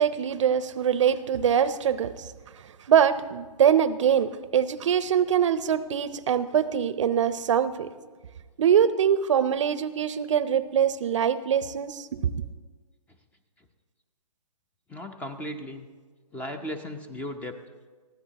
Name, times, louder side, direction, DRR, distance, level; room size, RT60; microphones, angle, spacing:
voice 1, 0.0-2.1 2.9-7.9 8.6-12.3, right 8 dB, 55° right, 14 dB, 0.7 m, -23 dB
voice 2, 14.9-15.9 16.3-17.5, left 1 dB, 10° left, 8 dB, 0.7 m, -36 dB
23.0 x 15.5 x 2.9 m, 1.4 s
hypercardioid pair, 140°, 19 cm